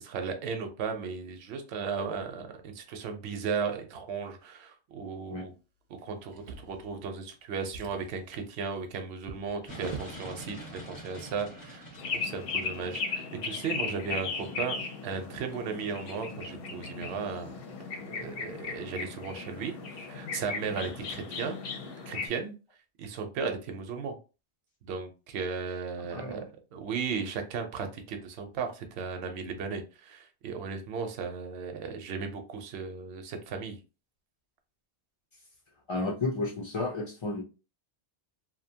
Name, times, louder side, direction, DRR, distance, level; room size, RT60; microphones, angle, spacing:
voice 1, 0.0-5.5 6.0-11.8 12.1-17.5 18.1-21.6 22.1-22.5 23.0-24.2 24.8-26.4 26.7-33.8, right 5 dB, 75° right, 5 dB, 0.8 m, -36 dB
Drawer open or close, 6.3-7.3 7.6-10.2 11.1-11.2 11.6-11.7, right 5 dB, 55° right, 0.4 m, -45 dB
sound 1, 9.7-21.9, equal, 20° left, 0.7 m, -50 dB
sound 2, 12.0-22.3, left 4 dB, 65° left, 0.7 m, -37 dB
voice 2, 26.1-26.4 35.9-37.4, left 2 dB, 50° left, -2 dB, 0.3 m, -32 dB
2.6 x 2.1 x 2.7 m, 0.32 s
omnidirectional pair, 1.2 m